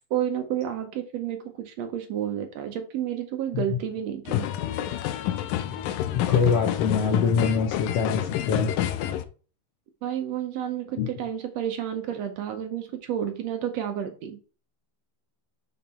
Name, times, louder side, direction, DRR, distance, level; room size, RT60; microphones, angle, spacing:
voice 1, 0.1-4.5 10.0-14.4, right 10 dB, 70° right, 6 dB, 1.7 m, -30 dB
sound 1, 4.3-9.2, left 12 dB, 85° left, 2.4 m, -28 dB
voice 2, 6.1-8.7 11.0-11.1, left 5 dB, 70° left, 3 dB, 1.5 m, -24 dB
5.8 x 5.2 x 4.3 m, 0.37 s
omnidirectional pair, 3.8 m